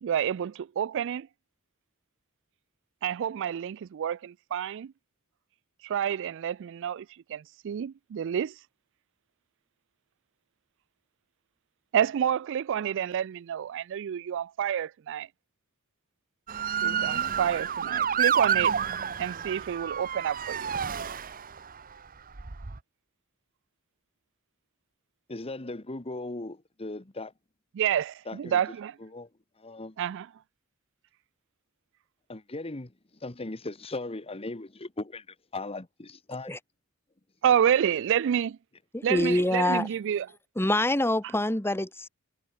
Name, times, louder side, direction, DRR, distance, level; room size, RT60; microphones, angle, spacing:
voice 1, 0.0-1.3 3.0-4.9 5.8-8.5 11.9-15.3 16.8-18.8 19.2-20.7 27.7-28.9 30.0-30.3 37.4-38.6 39.0-40.3, right 9 dB, 60° right, 0.3 m, -29 dB
Motor vehicle (road) / Siren, 16.5-21.7 22.4-22.8, right 8 dB, 40° right, 1.0 m, -29 dB
voice 2, 25.3-27.3 28.3-28.6 29.0-29.3 29.6-30.0 32.3-32.9 33.2-36.6, left 2 dB, 25° left, 1.3 m, -38 dB
voice 3, 38.9-39.9 40.6-42.1, left 1 dB, 10° left, 1.5 m, -25 dB
head